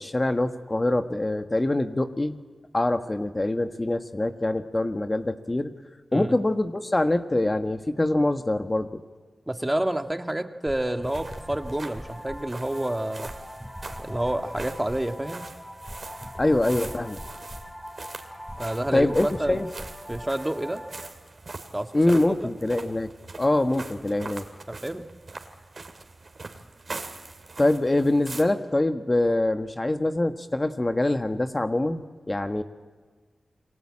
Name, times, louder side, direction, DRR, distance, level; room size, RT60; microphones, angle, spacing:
voice 1, 0.0-2.4 2.7-5.7 6.1-9.0 16.4-17.2 18.9-19.7 21.9-23.1 23.4-24.4 27.6-32.6, left 2 dB, 30° left, 8 dB, 1.5 m, -24 dB
voice 2, 9.5-13.3 14.0-15.4 18.6-19.6 20.1-20.8 21.7-22.5 24.7-25.1, right 1 dB, 15° right, 7 dB, 1.7 m, -29 dB
sound 1, 10.7-21.1, equal, 5° left, 4.7 m, -41 dB
sound 2, 11.0-28.4, right 3 dB, 55° right, 2.7 m, -43 dB
29.5 x 21.5 x 8.8 m, 1.5 s
cardioid pair, 50°, 0 cm